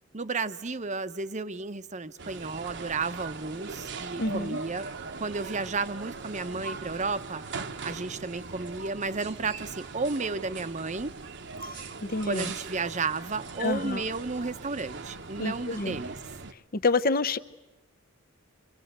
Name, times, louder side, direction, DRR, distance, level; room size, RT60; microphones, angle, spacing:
voice 1, 0.1-4.9 5.2-7.4 7.8-11.1 12.3-16.2, right 4 dB, 35° right, 12 dB, 0.9 m, -32 dB
sound 1, 2.2-16.5, right 4 dB, 55° right, 1.1 m, -40 dB
voice 2, 4.2-4.6 11.6-12.5 13.6-14.0 15.4-16.0 16.7-17.4, left 3 dB, 45° left, 12 dB, 0.8 m, -28 dB
28.5 x 25.0 x 7.9 m, 1.1 s
head